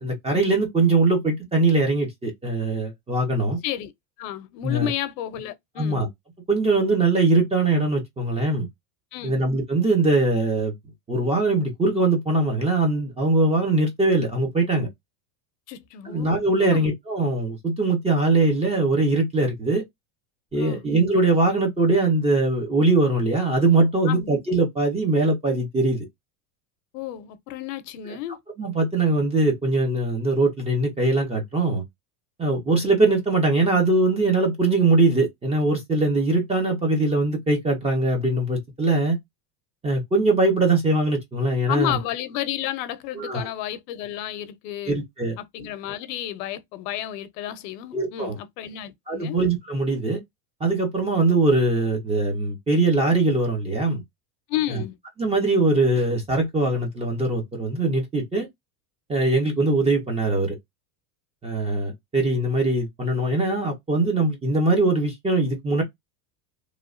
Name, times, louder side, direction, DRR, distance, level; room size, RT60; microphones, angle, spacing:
voice 1, 0.0-3.6 4.6-4.9 5.8-6.1 6.5-8.7 9.2-10.7 11.1-14.9 16.0-19.8 20.5-26.1 28.1-28.2 28.6-31.8 32.4-39.2 39.8-42.0 43.1-43.5 44.9-45.4 47.9-48.4 49.1-50.2 50.6-54.0 54.7-54.8 55.2-58.5 59.1-60.6 61.4-65.8, right 2 dB, 15° right, 0.5 m, -22 dB
voice 2, 4.2-6.0 9.1-9.4 15.7-16.3 16.6-16.9 20.6-20.8 24.1-24.3 26.9-28.4 41.7-45.0 45.4-49.4 54.5-55.0, left 12 dB, 70° left, 0.7 m, -31 dB
3.0 x 2.3 x 2.4 m
supercardioid pair, 145°, 50 cm